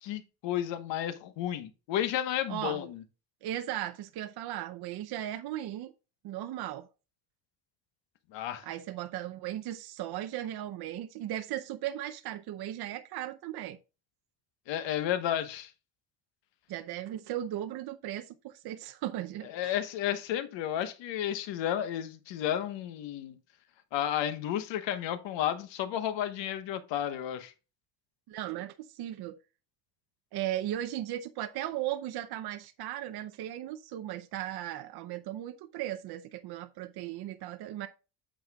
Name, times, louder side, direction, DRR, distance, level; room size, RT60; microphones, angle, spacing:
voice 1, 0.0-3.0 8.3-8.6 14.7-15.7 19.4-23.4 23.9-27.5, left 11 dB, 85° left, 1.3 m, -32 dB
voice 2, 2.5-2.8 3.4-5.9 6.2-6.9 8.6-13.8 16.7-19.8 28.3-29.4 30.3-37.9, right 13 dB, 60° right, 0.7 m, -37 dB
8.9 x 7.3 x 2.3 m
cardioid pair, 140°, 43 cm